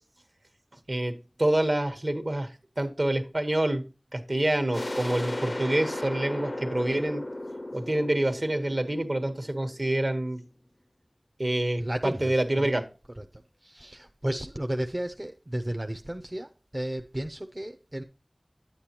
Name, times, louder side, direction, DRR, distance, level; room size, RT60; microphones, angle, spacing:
voice 1, 1.4-3.8 4.1-7.2 7.7-10.4 11.4-12.8, right 1 dB, 60° right, 1.3 m, -27 dB
sound 1, 4.7-10.2, left 1 dB, 45° left, 0.5 m, -35 dB
voice 2, 11.8-12.8 13.2-13.3 13.6-18.0, right 1 dB, 35° right, 0.6 m, -33 dB
9.6 x 8.7 x 2.9 m
wide cardioid pair, 40°, 0 cm